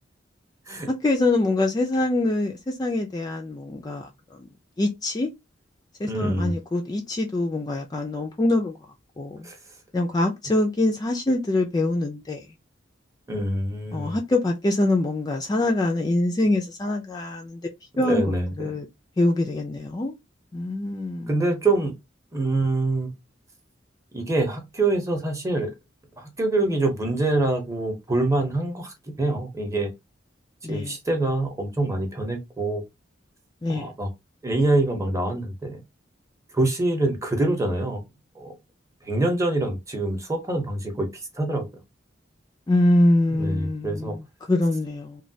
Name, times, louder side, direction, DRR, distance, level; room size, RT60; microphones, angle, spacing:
voice 1, 0.9-4.5 4.8-5.3 6.0-8.8 9.2-9.5 9.9-12.5 13.9-17.6 18.0-18.9 19.2-20.1 20.5-21.5 30.6-31.0 33.6-33.9 42.7-45.2, left 2 dB, 20° left, 0.3 m, -24 dB
voice 2, 6.0-6.5 9.4-9.6 13.3-14.2 18.0-18.5 21.3-21.9 22.3-23.1 24.1-25.7 26.2-29.9 30.7-32.8 33.7-34.1 34.4-35.8 36.5-38.0 38.4-38.5 39.1-41.1 41.4-41.7 43.4-44.2, right 2 dB, 15° right, 0.7 m, -25 dB
3.1 x 2.2 x 2.7 m
head